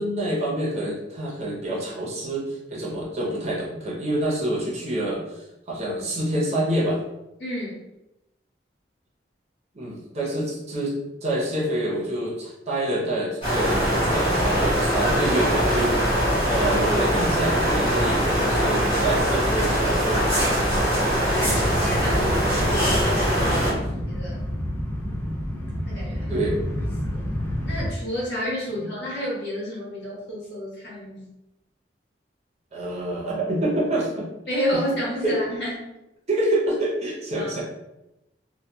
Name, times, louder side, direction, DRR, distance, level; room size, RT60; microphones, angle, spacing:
voice 1, 0.0-7.0 9.7-10.9 11.2-16.1 16.4-20.2 23.4-23.8 26.3-26.6 28.8-28.9 32.7-34.3 35.2-35.4 36.3-37.6, right 1 dB, 40° right, -4 dB, 0.7 m, -27 dB
voice 2, 7.4-7.8 20.9-23.6 24.0-24.4 25.8-26.5 27.1-27.3 27.7-31.2 34.5-35.8 37.4-37.6, equal, 80° left, -6 dB, 1.1 m, -31 dB
sound 1, 13.4-23.7, equal, 30° left, 1.2 m, -22 dB
evil wind, 21.2-27.9, equal, 15° left, 0.4 m, -29 dB
2.7 x 2.2 x 2.2 m, 0.91 s
head